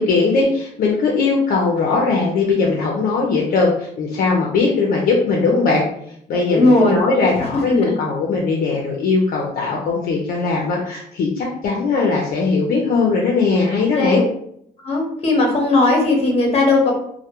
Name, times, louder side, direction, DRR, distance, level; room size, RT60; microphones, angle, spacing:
voice 1, 0.0-5.8 6.3-14.2, left 4 dB, 60° left, -2 dB, 0.5 m, -19 dB
voice 2, 6.5-6.9 7.7-7.9 13.9-14.2 14.8-16.9, left 2 dB, 35° left, 0 dB, 0.9 m, -17 dB
2.2 x 2.1 x 2.9 m, 0.69 s
cardioid pair, 110°, 17 cm